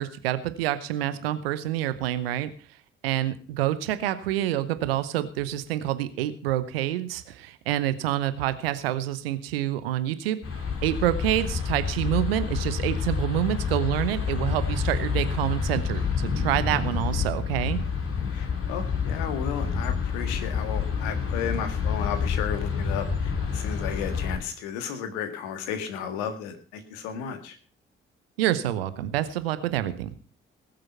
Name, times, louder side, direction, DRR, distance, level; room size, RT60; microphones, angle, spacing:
voice 1, 0.0-2.5 3.0-10.4 10.8-17.8 28.4-30.1, right 13 dB, 85° right, 13 dB, 1.0 m, -27 dB
sound 1, 10.4-24.4, left 6 dB, 50° left, 3.8 m, -28 dB
voice 2, 18.3-27.6, left 8 dB, 75° left, 8 dB, 1.9 m, -34 dB
19.5 x 7.9 x 5.6 m, 0.39 s
hypercardioid pair, 40°, 29 cm